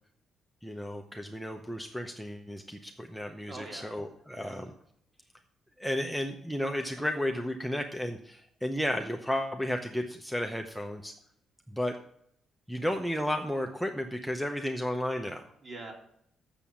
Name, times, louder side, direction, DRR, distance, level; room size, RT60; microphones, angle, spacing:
voice 1, 0.6-4.7 5.8-11.1 11.7-12.0 12.7-15.4, equal, ahead, 3 dB, 0.8 m, -33 dB
voice 2, 3.5-4.0 4.3-4.5 15.6-15.9, right 2 dB, 40° right, 1 dB, 2.8 m, -44 dB
6.9 x 6.9 x 7.4 m, 0.71 s
cardioid pair, 90°, 0 cm